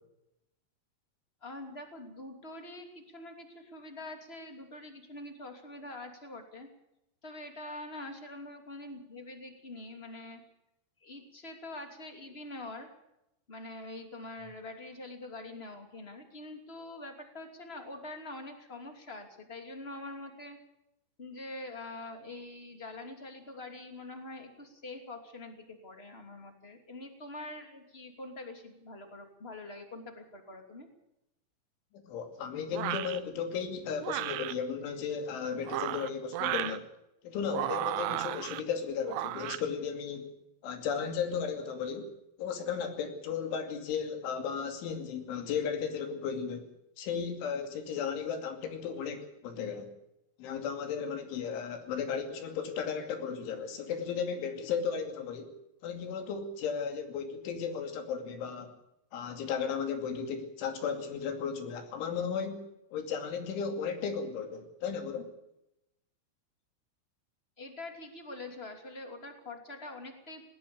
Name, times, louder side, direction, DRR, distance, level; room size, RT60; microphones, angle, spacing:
voice 1, 1.4-6.7 7.2-10.4 11.0-12.9 13.5-20.6 21.2-30.9 67.6-70.4, left 2 dB, 20° left, 5 dB, 1.9 m, -44 dB
voice 2, 31.9-36.9 37.2-40.3 40.6-42.1 42.4-46.7 47.0-49.9 50.4-55.5 55.8-58.7 59.1-65.3, left 6 dB, 75° left, 6 dB, 5.0 m, -35 dB
sound 1, 32.7-33.2 34.0-34.5 35.6-36.8 37.5-38.6 39.1-39.6, right 14 dB, 80° right, 2.4 m, -34 dB
19.5 x 19.0 x 7.0 m, 0.86 s
omnidirectional pair, 5.6 m